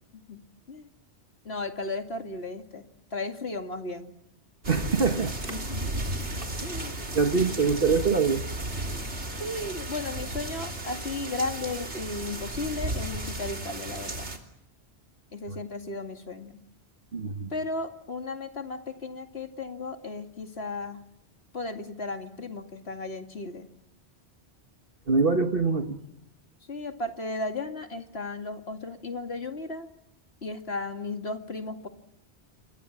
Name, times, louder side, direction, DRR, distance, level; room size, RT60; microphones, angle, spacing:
voice 1, 1.4-2.8 3.1-4.1 5.5-6.1 6.6-6.9 9.4-14.3 15.3-16.6 17.5-21.0 21.5-23.7 26.7-29.9 30.4-31.9, left 2 dB, 70° left, 6 dB, 2.7 m, -35 dB
sound 1, 4.6-14.4, right 1 dB, 90° right, 3.5 m, -34 dB
voice 2, 4.7-5.6 7.1-8.4 15.5-15.6 17.1-17.5 25.1-26.0, right 4 dB, 55° right, 6 dB, 1.7 m, -24 dB
28.0 x 24.5 x 7.4 m, 0.81 s
omnidirectional pair, 1.1 m